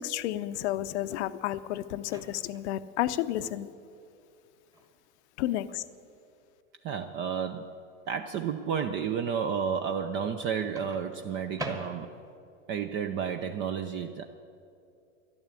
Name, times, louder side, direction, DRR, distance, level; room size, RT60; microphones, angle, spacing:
voice 1, 0.0-3.7 5.4-5.8, left 13 dB, 60° left, 13 dB, 0.7 m, -31 dB
Microwave oven, 2.0-2.7 4.7-4.9 10.8-12.4, right 1 dB, 10° right, 1.3 m, -41 dB
voice 2, 6.8-7.8 8.1-12.2 12.7-14.2, right 7 dB, 30° right, 7 dB, 0.5 m, -31 dB
12.5 x 11.0 x 8.3 m, 2.5 s
supercardioid pair, 130°, 39 cm